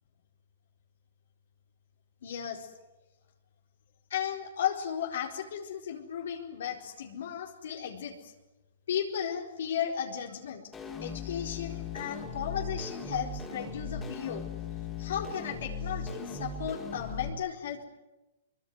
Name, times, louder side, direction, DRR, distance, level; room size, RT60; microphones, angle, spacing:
voice 1, 2.2-2.7 4.1-8.3 8.9-10.7 11.0-14.4 15.0-17.8, left 9 dB, 70° left, 1 dB, 4.4 m, -35 dB
sound 1, 10.7-17.3, left 4 dB, 15° left, 3.6 m, -38 dB
23.5 x 23.0 x 9.6 m, 1.0 s
hypercardioid pair, 145°, 0 cm